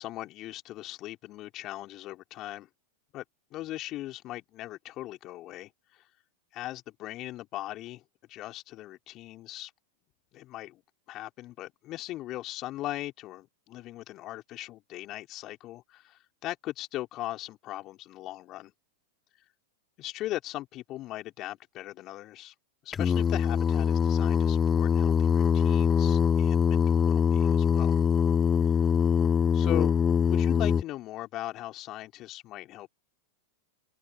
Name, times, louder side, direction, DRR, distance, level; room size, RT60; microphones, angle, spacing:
voice 1, 0.0-2.7 3.1-3.2 3.5-6.1 6.5-8.0 8.3-9.7 10.3-10.8 11.1-18.7 20.0-22.5 22.8-27.9 29.5-29.9 30.3-32.9, left 15 dB, 40° left, 4.0 m, -39 dB
Singing, 22.9-30.8, left 7 dB, 25° left, 0.6 m, -23 dB
open air
hypercardioid pair, 100°, 0 cm